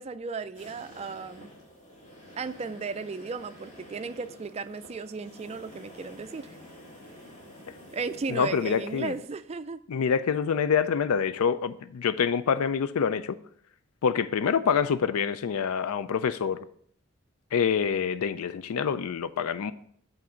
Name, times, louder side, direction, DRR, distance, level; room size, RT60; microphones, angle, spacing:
voice 1, 0.0-1.5 2.4-6.6 7.9-9.8, right 4 dB, 30° right, 0.3 m, -35 dB
sound 1, 0.5-9.2, left 1 dB, 30° left, 1.7 m, -49 dB
voice 2, 8.3-9.1 9.9-13.4 14.0-16.6 17.5-19.7, left 6 dB, 85° left, 0.4 m, -26 dB
8.4 x 4.0 x 6.3 m
head